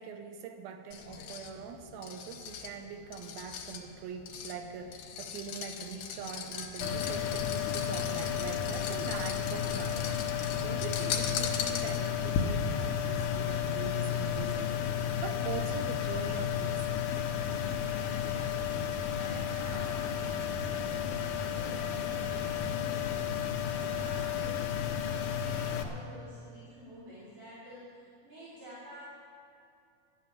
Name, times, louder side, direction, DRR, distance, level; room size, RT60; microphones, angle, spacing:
voice 1, 0.0-17.1, right 7 dB, 85° right, 6 dB, 2.8 m, -43 dB
sound 1, 0.9-12.3, left 8 dB, 85° left, 3.0 m, -40 dB
sound 2, 6.8-25.8, left 8 dB, 70° left, 2.1 m, -32 dB
voice 2, 17.6-29.1, equal, 60° right, -10 dB, 4.5 m, -50 dB
12.0 x 9.3 x 8.6 m, 2.5 s
omnidirectional pair, 4.2 m